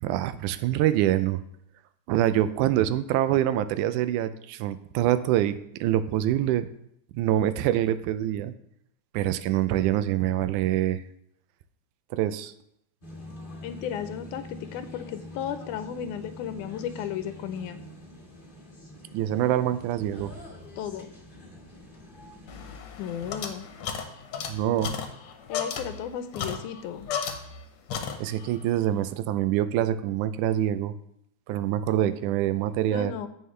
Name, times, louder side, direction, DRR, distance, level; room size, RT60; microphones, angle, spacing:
voice 1, 0.0-1.4 2.1-6.7 7.1-8.5 9.1-11.0 12.1-12.5 19.1-20.3 24.5-24.9 28.2-30.9 31.5-33.1, right 12 dB, 85° right, 13 dB, 2.1 m, -25 dB
sound 1, 13.0-22.8, left 1 dB, 25° left, 1.1 m, -45 dB
voice 2, 13.6-17.8 20.8-21.1 23.0-23.7 25.5-27.1 32.9-33.3, left 9 dB, 85° left, 10 dB, 2.2 m, -34 dB
sound 2, 22.5-27.6 27.9-28.6, left 7 dB, 65° left, 1.9 m, -34 dB
16.0 x 5.6 x 3.2 m, 0.75 s
omnidirectional pair, 3.5 m